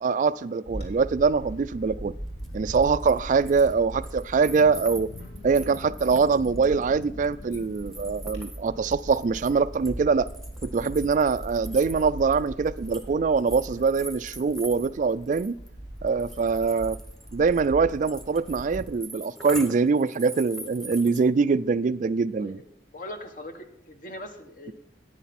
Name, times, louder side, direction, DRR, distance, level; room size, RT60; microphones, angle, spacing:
voice 1, 0.0-2.1 2.5-5.1 5.4-10.3 10.6-15.5 16.0-17.0 17.3-22.6, right 5 dB, 45° right, 0.3 m, -23 dB
Bird / Wind, 0.7-18.9, equal, 65° left, 3.0 m, -40 dB
sound 1, 2.4-2.5 2.7-3.7 4.0-9.9 10.3-13.1 13.4-15.7 16.1-21.2, right 1 dB, ahead, 0.9 m, -43 dB
sound 2, 4.4-10.0, left 2 dB, 85° left, 0.7 m, -46 dB
voice 2, 22.9-24.7, left 1 dB, 45° left, 1.2 m, -41 dB
10.0 x 9.3 x 4.2 m
head